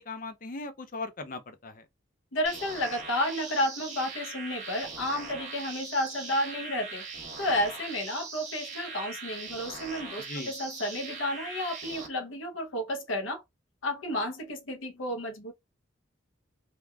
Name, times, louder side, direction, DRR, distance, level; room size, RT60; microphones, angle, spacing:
voice 1, 0.0-1.9 10.2-10.5, left 3 dB, 45° left, 0.5 m, -39 dB
voice 2, 2.3-7.0 7.4-13.4 13.8-15.5, left 1 dB, 90° left, 0.7 m, -31 dB
sound 1, 2.4-12.1, right 4 dB, 40° right, 0.9 m, -41 dB
3.3 x 2.2 x 2.2 m
head